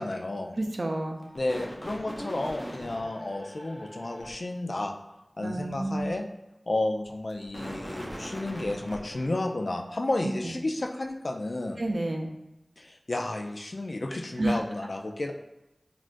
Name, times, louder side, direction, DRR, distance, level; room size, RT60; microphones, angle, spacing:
voice 1, 0.0-0.6 1.3-4.9 5.4-6.3 6.7-11.8 12.8-15.3, left 2 dB, 65° left, 3 dB, 0.3 m, -32 dB
voice 2, 0.5-1.2 5.4-6.2 10.2-10.5 11.8-12.3 14.4-14.6, right 1 dB, 70° right, 3 dB, 0.4 m, -30 dB
sound 1, 1.1-4.3 7.1-9.2, equal, 10° right, 0.7 m, -41 dB
3.5 x 2.4 x 2.5 m, 0.92 s
wide cardioid pair, 50°, 0 cm